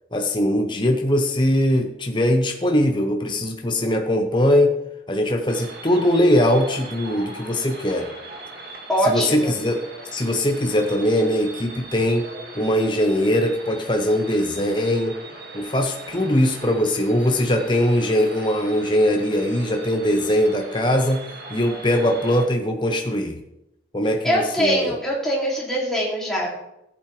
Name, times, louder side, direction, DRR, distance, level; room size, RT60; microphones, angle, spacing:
voice 1, 0.1-4.7 5.1-8.1 9.0-9.8 10.1-12.3 12.5-15.2 15.5-21.2 21.5-23.4 23.9-24.9, left 1 dB, 25° left, 3 dB, 0.8 m, -21 dB
sound 1, 5.5-22.5, right 1 dB, 55° right, 2.1 m, -39 dB
voice 2, 8.9-9.6 24.2-26.5, equal, ahead, -5 dB, 2.7 m, -22 dB
14.5 x 8.5 x 3.3 m, 0.86 s
head